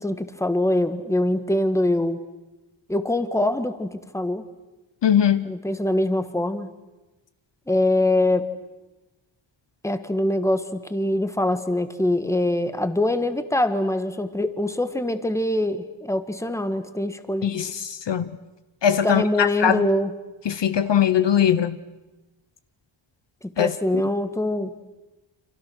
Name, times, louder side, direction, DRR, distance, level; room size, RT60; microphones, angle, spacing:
voice 1, 0.0-2.2 2.9-4.4 5.4-6.7 7.7-8.5 9.8-17.7 19.0-20.2 23.4-24.7, left 1 dB, 5° left, 1.5 m, -24 dB
voice 2, 5.0-5.5 17.4-18.3 18.8-19.9 20.5-21.8 23.6-23.7, left 9 dB, 60° left, 0.9 m, -21 dB
29.5 x 26.5 x 6.3 m
wide cardioid pair, 140°, 48 cm